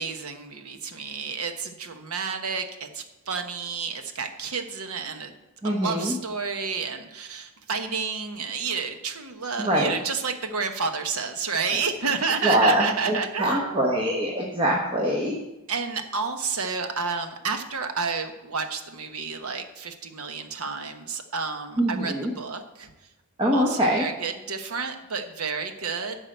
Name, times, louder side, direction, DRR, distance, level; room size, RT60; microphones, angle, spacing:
voice 1, 0.0-5.3 5.6-14.0 15.7-22.9 23.5-26.3, right 5 dB, 90° right, 7 dB, 1.1 m, -30 dB
voice 2, 5.6-6.1 9.6-10.0 12.4-15.4 21.8-22.3 23.4-24.0, right 1 dB, 25° right, -1 dB, 1.0 m, -23 dB
11.0 x 4.9 x 7.8 m, 1.0 s
head